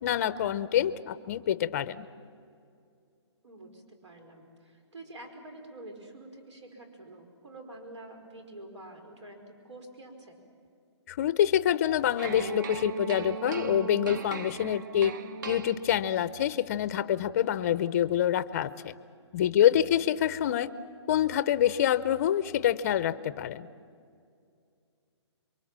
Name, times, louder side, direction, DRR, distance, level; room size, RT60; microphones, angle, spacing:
voice 1, 0.0-2.1 11.1-15.1 15.5-18.9 19.3-20.7 21.1-23.7, left 10 dB, 30° left, 14 dB, 0.6 m, -26 dB
voice 2, 3.4-10.4 19.6-19.7, right 1 dB, 75° right, 5 dB, 5.1 m, -47 dB
sound 1, 12.2-16.3, right 5 dB, 40° right, 0.9 m, -37 dB
27.5 x 23.5 x 7.4 m, 2.4 s
hypercardioid pair, 165°, 15 cm